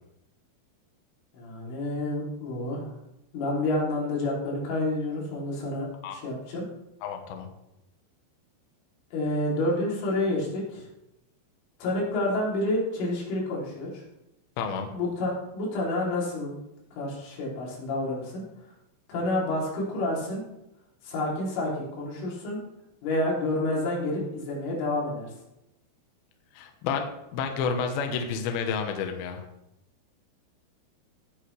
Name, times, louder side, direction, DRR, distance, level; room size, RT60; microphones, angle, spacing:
voice 1, 1.3-2.9 3.3-6.7 9.1-10.8 11.8-14.0 14.9-16.5 16.9-18.5 19.1-20.4 21.0-22.6 23.0-25.3, left 1 dB, 85° left, -4 dB, 6.0 m, -29 dB
voice 2, 7.0-7.5 14.6-14.9 26.5-29.4, left 6 dB, 70° left, 4 dB, 2.5 m, -30 dB
17.5 x 8.3 x 3.4 m, 0.89 s
omnidirectional pair, 5.6 m